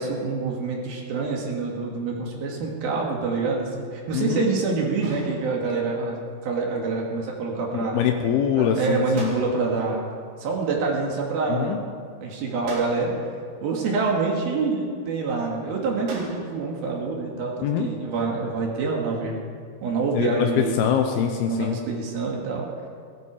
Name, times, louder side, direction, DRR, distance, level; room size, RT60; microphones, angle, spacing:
voice 1, 0.0-6.2 6.4-8.0 8.5-10.1 10.4-11.8 12.2-13.3 13.6-19.4 19.8-20.8 21.5-22.7, right 4 dB, 70° right, -1 dB, 3.7 m, -26 dB
voice 2, 4.1-4.5 7.9-9.3 11.5-11.8 17.6-17.9 20.2-20.5 20.8-21.8, left 8 dB, 80° left, 4 dB, 2.7 m, -23 dB
sound 1, 5.0-5.9 9.2-10.0 12.7-13.4 16.1-16.7, right 2 dB, 85° right, 4.6 m, -40 dB
17.5 x 13.5 x 4.8 m, 2.1 s
omnidirectional pair, 4.5 m